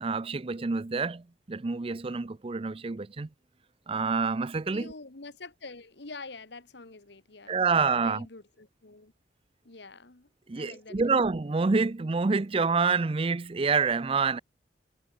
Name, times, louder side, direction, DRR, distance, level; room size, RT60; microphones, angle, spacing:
voice 1, 0.0-3.3 3.9-4.9 7.5-8.3 10.5-14.4, right 4 dB, 30° right, 0.5 m, -27 dB
voice 2, 4.7-9.1 9.6-10.3 10.5-11.2, left 3 dB, 70° left, 1.6 m, -46 dB
head